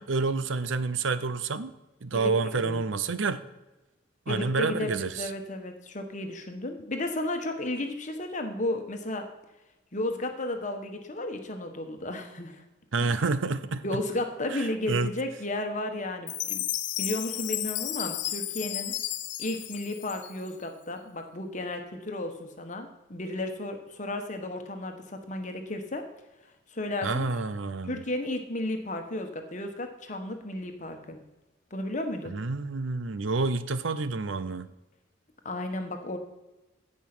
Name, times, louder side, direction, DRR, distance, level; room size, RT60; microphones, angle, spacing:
voice 1, 0.0-1.7 2.0-3.4 4.3-5.3 12.9-13.9 14.5-15.1 27.0-28.0 32.3-34.7, right 4 dB, 80° right, 13 dB, 0.7 m, -28 dB
voice 2, 2.1-2.8 4.3-9.3 9.9-12.6 13.0-13.2 13.8-16.6 17.0-18.9 19.4-26.0 26.7-27.2 27.9-31.2 31.7-32.4 35.4-36.2, left 1 dB, 40° left, 5 dB, 1.3 m, -33 dB
Chime, 16.3-20.6, left 14 dB, 65° left, 0.6 m, -33 dB
15.5 x 5.4 x 6.1 m, 1.0 s
head